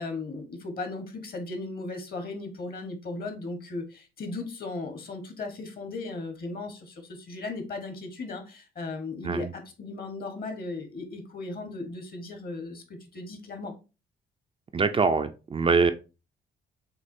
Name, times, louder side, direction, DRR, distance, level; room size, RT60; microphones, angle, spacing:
voice 1, 0.0-13.7, left 3 dB, 50° left, 7 dB, 1.2 m, -37 dB
voice 2, 14.7-15.9, right 4 dB, 30° right, 7 dB, 0.4 m, -23 dB
6.5 x 2.4 x 2.7 m, 0.31 s
cardioid pair, 90°, 20 cm